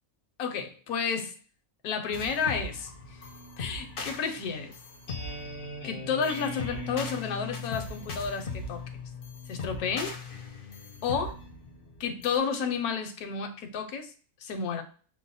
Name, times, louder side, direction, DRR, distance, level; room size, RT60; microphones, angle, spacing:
voice 1, 0.4-1.3 1.8-2.9 3.6-4.7 5.8-8.8 9.5-10.1 11.0-11.4 12.0-14.1 14.4-14.8, left 6 dB, 80° left, 5 dB, 1.2 m, -31 dB
sound 1, 2.1-12.4, left 3 dB, 50° left, 0.8 m, -39 dB
6.1 x 2.0 x 4.0 m, 0.40 s
omnidirectional pair, 1.6 m